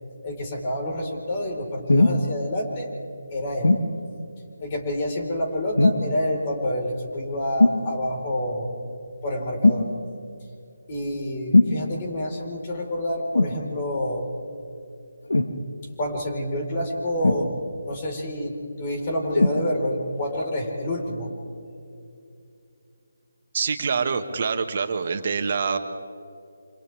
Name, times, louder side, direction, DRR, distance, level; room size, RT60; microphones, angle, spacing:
voice 1, 0.2-2.9 3.3-3.7 4.6-8.7 9.2-9.9 10.9-14.3 16.0-17.5 17.8-21.3, left 1 dB, 30° left, 0 dB, 4.7 m, -28 dB
sound 1, 1.9-2.2 3.6-3.9 5.8-6.1 7.6-7.8 9.6-9.9 11.5-11.8 13.3-13.6 15.3-15.6 17.2-17.8 19.3-19.6 20.4-20.5, left 2 dB, 80° left, 1.6 m, -18 dB
voice 2, 23.5-25.8, right 5 dB, 45° right, 7 dB, 1.8 m, -25 dB
28.5 x 27.5 x 3.6 m, 2.6 s
figure-of-eight pair, 155°, 0 cm